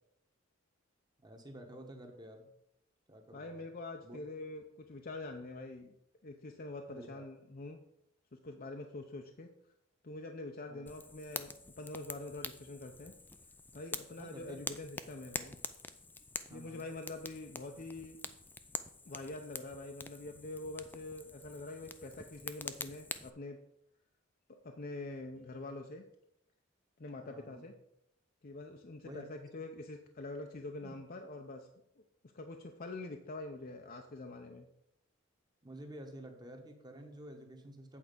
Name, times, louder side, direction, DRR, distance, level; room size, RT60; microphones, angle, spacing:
voice 1, 1.2-2.5 3.1-3.6 4.0-4.2 6.9-7.2 10.7-10.9 14.2-14.6 16.5-16.8 27.2-27.7 29.0-29.3 30.8-30.9 35.6-38.0, right 1 dB, 20° right, 3 dB, 1.2 m, -50 dB
voice 2, 3.3-5.9 6.2-7.8 8.3-9.7 10.0-13.1 13.7-15.6 16.5-18.2 19.0-23.6 24.5-26.0 27.0-27.7 28.4-31.7 32.0-32.1 32.3-34.7, left 2 dB, 45° left, 3 dB, 0.6 m, -45 dB
Fire, 10.9-23.3, left 3 dB, 10° left, 0.4 m, -46 dB
8.6 x 4.6 x 6.7 m, 0.77 s
head